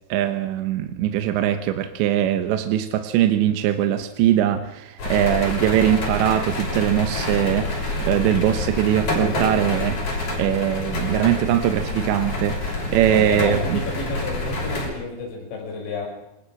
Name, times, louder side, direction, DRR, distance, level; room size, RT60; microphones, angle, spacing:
voice 1, 0.1-13.8, right 11 dB, 75° right, 3.2 m, -21 dB
sound 1, 5.0-14.9, left 2 dB, 40° left, 6.9 m, -27 dB
voice 2, 13.1-16.1, left 3 dB, 70° left, 8.4 m, -30 dB
26.0 x 20.5 x 6.5 m
omnidirectional pair, 5.4 m